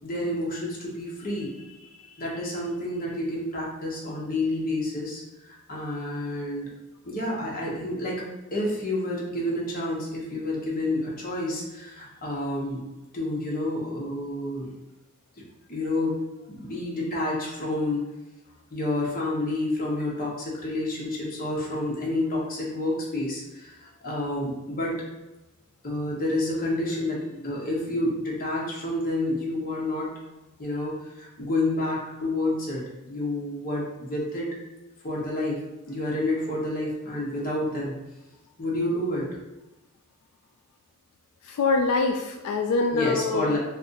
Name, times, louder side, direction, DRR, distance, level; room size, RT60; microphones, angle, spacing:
voice 1, 0.0-6.7 7.0-8.2 8.5-12.8 13.1-14.7 15.4-15.5 15.7-16.2 16.5-18.0 18.7-25.0 25.8-30.1 30.6-34.6 35.0-35.6 35.9-38.0 38.6-39.3 42.9-43.6, left 1 dB, 40° left, -4 dB, 0.9 m, -29 dB
voice 2, 41.4-43.5, left 3 dB, 85° left, 6 dB, 0.3 m, -24 dB
2.5 x 2.5 x 3.8 m, 1.0 s
head